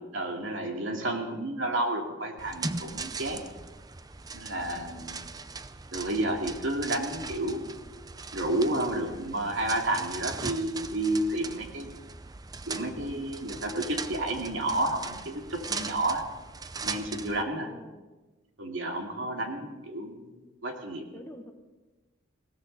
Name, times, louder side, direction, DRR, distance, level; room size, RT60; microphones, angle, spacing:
voice 1, 0.1-3.4 4.3-5.3 5.9-7.7 8.3-11.9 12.7-16.2 16.8-17.7 18.6-21.0, right 1 dB, 70° right, 2 dB, 2.6 m, -31 dB
sound 1, 2.4-17.4, right 4 dB, 20° right, 0.5 m, -39 dB
voice 2, 4.6-5.2 17.3-18.1 19.3-19.8 20.9-21.5, left 1 dB, 10° left, 5 dB, 1.1 m, -49 dB
20.0 x 17.0 x 4.1 m, 1.2 s
head